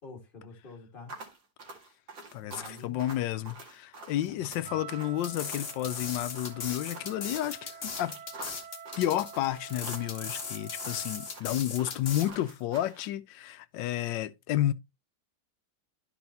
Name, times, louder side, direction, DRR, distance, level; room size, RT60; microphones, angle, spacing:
voice 1, 0.0-1.2 2.4-3.0 4.3-4.8, left 3 dB, 30° left, 2.0 m, -48 dB
sound 1, 1.1-13.1, right 2 dB, 85° right, 2.6 m, -47 dB
voice 2, 2.3-8.2 9.0-14.7, left 13 dB, 85° left, 1.3 m, -31 dB
Wind instrument woodwind instrument, 4.6-11.4, right 8 dB, 65° right, 1.4 m, -48 dB
sound 2, 5.2-12.3, left 6 dB, 45° left, 1.5 m, -38 dB
12.5 x 5.3 x 2.7 m
omnidirectional pair, 1.9 m